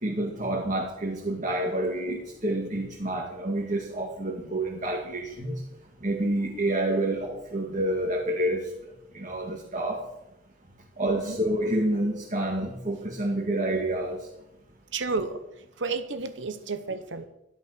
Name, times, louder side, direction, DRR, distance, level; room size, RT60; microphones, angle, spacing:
voice 1, 0.0-5.5 6.0-8.7 9.1-10.0 11.0-14.3, right 1 dB, 40° right, -1 dB, 2.1 m, -28 dB
voice 2, 11.0-11.4 14.9-15.4 15.8-17.2, right 4 dB, 75° right, 10 dB, 1.0 m, -31 dB
12.0 x 10.5 x 6.7 m, 0.86 s
head